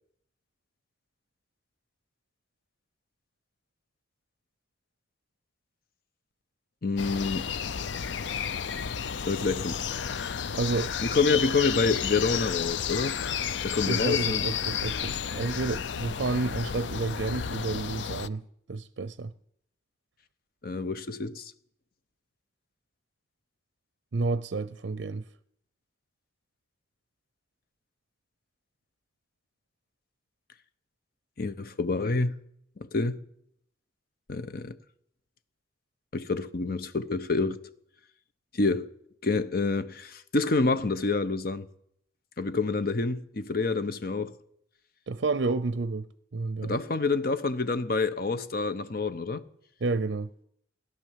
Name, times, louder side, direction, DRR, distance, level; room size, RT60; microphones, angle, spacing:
voice 1, 6.8-7.5 9.3-9.8 11.0-13.2 13.6-14.4 20.6-21.5 31.4-32.3 32.8-33.2 34.3-34.8 36.1-37.6 38.5-38.9 39.2-41.7 42.4-44.3 46.6-49.4, left 3 dB, 55° left, 0.9 m, -27 dB
sound 1, 7.0-18.3, left 7 dB, 75° left, 0.5 m, -32 dB
voice 2, 10.5-10.9 13.8-19.3 24.1-25.2 45.1-46.8 49.8-50.3, right 3 dB, 70° right, 0.5 m, -30 dB
17.0 x 11.0 x 7.4 m
head